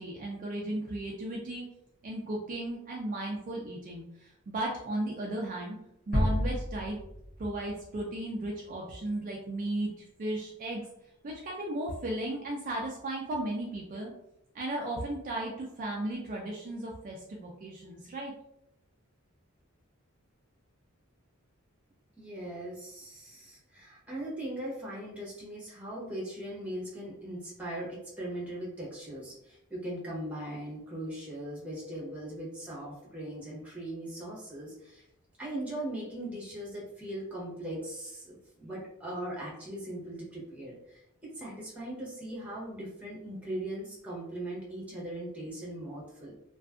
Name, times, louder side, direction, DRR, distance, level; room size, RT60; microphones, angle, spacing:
voice 1, 0.0-1.6 2.0-5.8 6.1-7.0 7.4-9.9 10.2-10.8 11.2-14.1 14.5-18.3, right 1 dB, 40° right, -2 dB, 0.4 m, -35 dB
sound 1, 6.1-8.0, equal, 45° left, 0.9 m, -30 dB
voice 2, 22.2-35.0 35.4-46.3, right 1 dB, 5° right, -6 dB, 0.8 m, -39 dB
2.5 x 2.4 x 2.3 m, 0.80 s
head